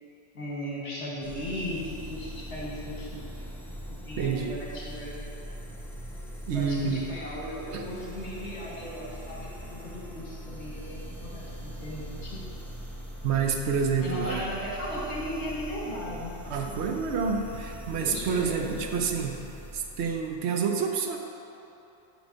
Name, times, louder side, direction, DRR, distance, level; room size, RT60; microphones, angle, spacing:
voice 1, 0.3-3.5 4.0-5.2 6.5-12.5 14.0-16.3 18.0-18.8, equal, 70° left, -6 dB, 1.8 m, -37 dB
sound 1, 1.2-20.4, equal, ahead, 0.6 m, -41 dB
voice 2, 4.2-4.6 6.5-7.0 7.7-7.8 13.2-14.5 16.5-19.4 19.7-21.2, right 6 dB, 70° right, 3 dB, 0.9 m, -28 dB
9.2 x 3.1 x 5.3 m, 2.9 s
omnidirectional pair, 1.2 m